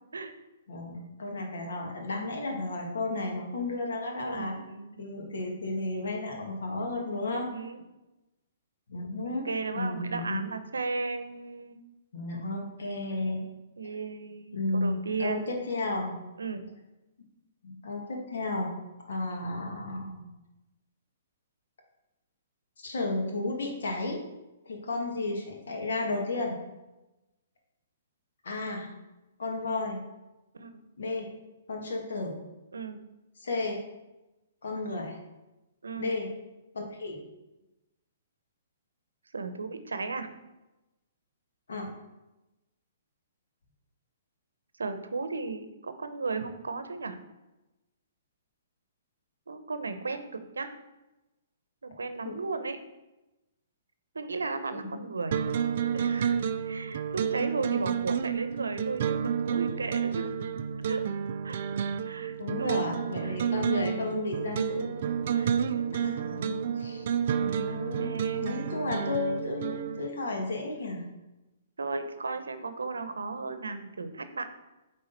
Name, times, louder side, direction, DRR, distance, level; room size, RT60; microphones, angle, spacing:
voice 1, 0.7-4.7 5.0-7.5 8.9-9.5 9.7-10.5 12.1-13.5 14.5-16.2 17.6-18.7 19.1-20.3 22.8-24.2 24.6-26.6 28.4-28.9 29.4-30.0 31.0-31.3 31.7-32.4 33.4-33.8 34.6-35.2 36.0-36.3 36.7-37.2 41.7-41.9 52.2-52.4 54.7-55.0 62.2-65.5 65.9-67.0 67.4-71.1, left 2 dB, 70° left, 1 dB, 1.7 m, -33 dB
voice 2, 4.3-5.1 7.3-7.8 9.4-11.8 13.8-15.4 16.4-16.6 30.5-30.7 32.7-33.0 35.8-36.1 39.3-40.3 44.8-47.2 49.5-50.7 51.8-52.8 54.1-55.4 55.9-56.4 56.6-60.5 60.9-61.0 61.4-62.9 63.2-63.4 65.2-66.0 68.0-68.5 71.8-74.4, right 4 dB, 85° right, 10 dB, 0.7 m, -35 dB
sound 1, 55.3-70.1, right 7 dB, 55° right, 0.4 m, -30 dB
8.7 x 3.7 x 4.0 m, 1.0 s
hypercardioid pair, 125°, 0 cm